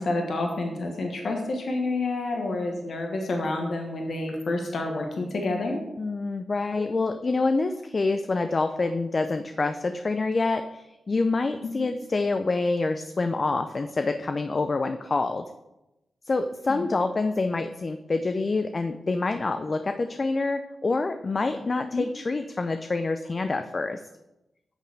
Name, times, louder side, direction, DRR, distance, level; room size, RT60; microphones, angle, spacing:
voice 1, 0.0-5.8 11.6-11.7 16.6-16.8 21.9-22.0, left 2 dB, 70° left, 2 dB, 1.4 m, -29 dB
voice 2, 6.0-15.4 16.3-24.0, left 3 dB, 45° left, 8 dB, 0.5 m, -27 dB
9.0 x 6.7 x 3.5 m, 0.94 s
supercardioid pair, 45°, 0 cm